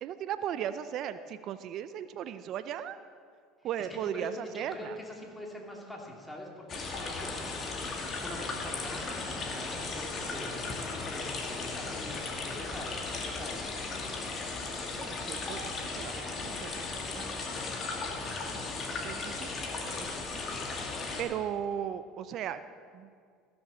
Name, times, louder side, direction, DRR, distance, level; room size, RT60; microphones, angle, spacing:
voice 1, 0.0-3.0 3.6-5.0 15.0-17.7 18.5-19.5 20.0-20.1 20.3-20.6 21.2-22.6 22.9-23.1, right 9 dB, 55° right, 12 dB, 0.5 m, -37 dB
voice 2, 3.8-10.6 11.1-12.9 13.2-13.7, equal, 10° left, -2 dB, 2.7 m, -44 dB
sound 1, 6.7-21.2, left 3 dB, 40° left, 2.2 m, -36 dB
15.0 x 7.0 x 6.3 m, 2.1 s
supercardioid pair, 90°, 0 cm